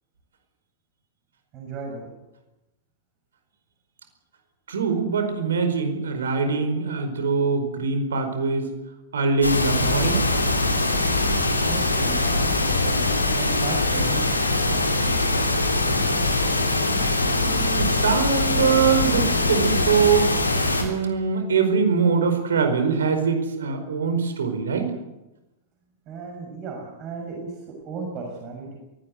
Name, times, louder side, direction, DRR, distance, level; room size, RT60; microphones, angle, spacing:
voice 1, 1.5-2.1 11.7-14.3 14.5-15.2 26.1-28.8, right 4 dB, 35° right, 0 dB, 6.6 m, -36 dB
voice 2, 4.7-8.7 9.1-10.3 17.2-20.3 20.8-24.9, right 5 dB, 65° right, 7 dB, 4.8 m, -23 dB
sound 1, 9.4-20.8, left 2 dB, 80° left, 3.8 m, -22 dB
22.5 x 17.5 x 8.2 m, 0.97 s
figure-of-eight pair, 95°, 0 cm